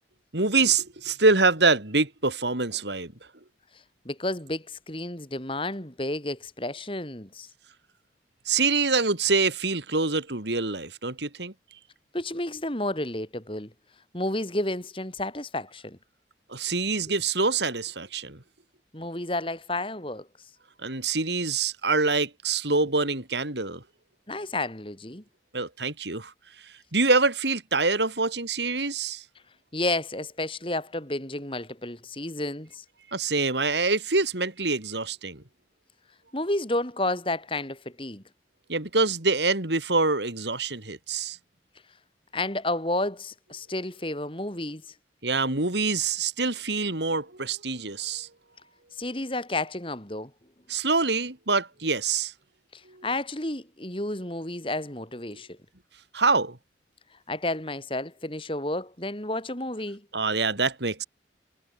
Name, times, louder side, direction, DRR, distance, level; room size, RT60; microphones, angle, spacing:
voice 1, 0.3-3.1 8.5-11.5 16.5-18.4 20.8-23.8 25.5-26.3 26.6-29.2 33.1-35.4 38.7-41.4 45.2-48.3 50.7-52.3 52.9-53.1 56.1-56.6 60.1-61.0, right 3 dB, 80° right, 3.5 m, -25 dB
voice 2, 4.1-7.5 12.1-13.7 14.1-16.0 18.9-20.3 24.3-25.2 29.7-32.8 36.3-38.2 42.3-44.8 49.0-50.3 52.7-55.6 57.3-60.0, left 2 dB, 30° left, 3.9 m, -31 dB
head